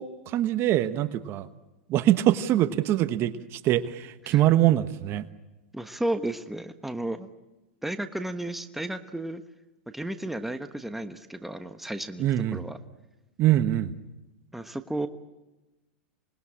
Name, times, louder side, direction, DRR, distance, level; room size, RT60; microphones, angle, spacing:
voice 1, 0.0-1.5 1.9-5.2 12.2-12.6 13.4-14.0, right 13 dB, 40° right, 12 dB, 1.2 m, -24 dB
voice 2, 5.7-7.3 7.8-9.4 9.9-12.2 12.5-12.8 14.5-15.1, right 1 dB, 5° right, 9 dB, 1.2 m, -33 dB
27.0 x 20.0 x 8.8 m, 1.1 s
hypercardioid pair, 115°, 6 cm